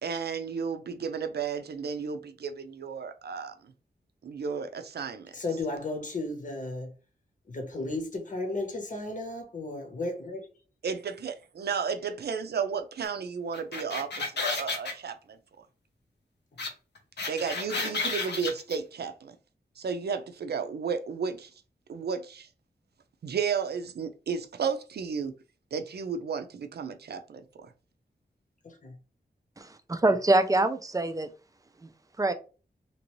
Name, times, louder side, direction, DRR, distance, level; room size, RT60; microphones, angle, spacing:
voice 1, 0.0-3.7 4.2-5.4 10.8-15.4 17.3-19.3 19.8-21.5 21.9-22.5 23.2-25.3 25.7-27.7, right 6 dB, 70° right, 0.5 m, -33 dB
voice 2, 5.3-6.9 7.5-10.5 28.6-29.0, left 2 dB, 50° left, 0.9 m, -34 dB
sound 1, 13.5-14.9 16.6-16.7 17.0-18.8, left 3 dB, 90° left, 0.7 m, -31 dB
voice 3, 29.6-31.3 31.8-31.9 32.2-32.3, right 2 dB, 20° right, 0.4 m, -25 dB
3.0 x 2.6 x 3.0 m
wide cardioid pair, 100°, 17 cm